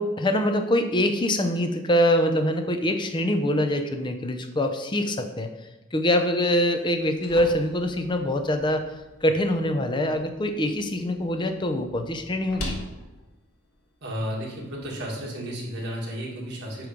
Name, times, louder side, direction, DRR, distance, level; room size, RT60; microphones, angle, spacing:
voice 1, 0.0-5.5 5.9-8.8 9.2-12.8, left 1 dB, 20° left, 6 dB, 0.5 m, -24 dB
sound 1, 6.8-14.7, left 1 dB, 80° left, 1.2 m, -43 dB
voice 2, 14.0-16.9, equal, 50° right, -3 dB, 1.7 m, -33 dB
8.3 x 3.1 x 5.1 m, 1.0 s
head